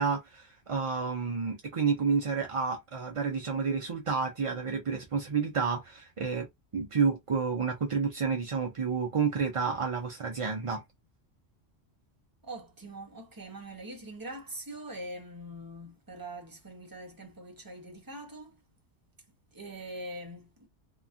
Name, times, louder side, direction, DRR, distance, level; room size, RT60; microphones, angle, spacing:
voice 1, 0.0-6.5 6.7-10.8, right 5 dB, 55° right, 0.3 m, -30 dB
voice 2, 12.4-18.6 19.5-20.7, right 1 dB, 20° right, 0.7 m, -43 dB
2.8 x 2.3 x 2.5 m
omnidirectional pair, 1.2 m